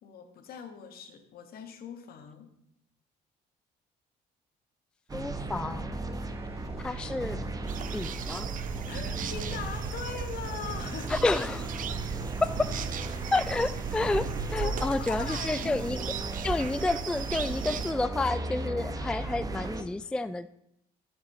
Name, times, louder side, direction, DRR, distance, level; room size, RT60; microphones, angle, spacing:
voice 1, 0.0-2.5 8.9-11.2 14.6-15.9, left 7 dB, 65° left, 6 dB, 1.6 m, -41 dB
voice 2, 5.1-6.0 6.8-7.4 7.9-8.5 11.1-11.6 12.4-12.7 13.3-16.0 16.4-20.5, left 2 dB, 5° left, 13 dB, 0.3 m, -30 dB
sound 1, 5.1-19.8, right 2 dB, 20° right, 0.9 m, -36 dB
sound 2, 6.1-13.6, left 2 dB, 35° right, 1.3 m, -52 dB
sound 3, 7.7-17.9, right 7 dB, 50° right, 0.7 m, -36 dB
7.6 x 7.3 x 6.7 m, 0.78 s
cardioid pair, 110°, 17 cm